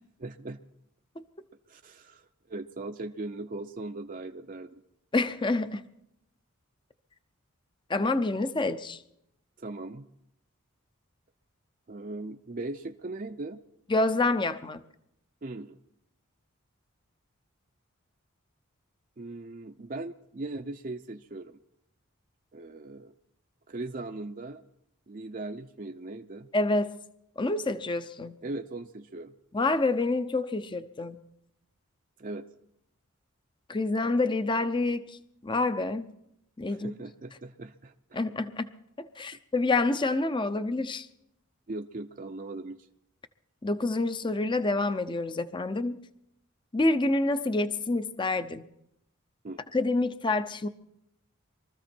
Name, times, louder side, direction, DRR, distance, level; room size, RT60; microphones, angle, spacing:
voice 1, 0.2-0.6 1.7-4.8 9.6-10.0 11.9-13.6 15.4-15.8 19.2-21.6 22.5-23.1 23.7-24.6 25.1-26.5 28.4-29.3 32.2-32.4 36.7-38.2 41.7-42.9 49.4-49.6, right 2 dB, 40° right, 5 dB, 0.5 m, -39 dB
voice 2, 5.1-5.8 7.9-9.0 13.9-14.8 26.5-27.0 27.4-28.4 29.5-31.2 33.7-36.1 36.6-36.9 38.1-38.7 39.0-41.1 43.6-46.0 46.7-48.6 49.7-50.7, left 2 dB, 20° left, 12 dB, 0.6 m, -27 dB
23.0 x 14.0 x 4.4 m, 0.77 s
head